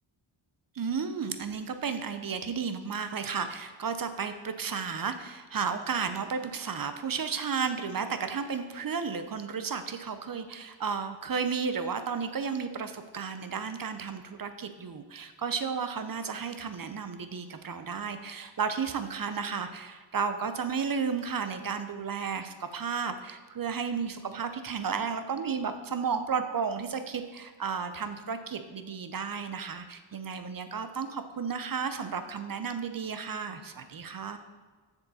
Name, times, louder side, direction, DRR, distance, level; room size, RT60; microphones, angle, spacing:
voice 1, 0.7-34.4, right 6 dB, 45° right, 9 dB, 0.7 m, -33 dB
7.1 x 6.7 x 4.1 m, 1.5 s
wide cardioid pair, 90°, 49 cm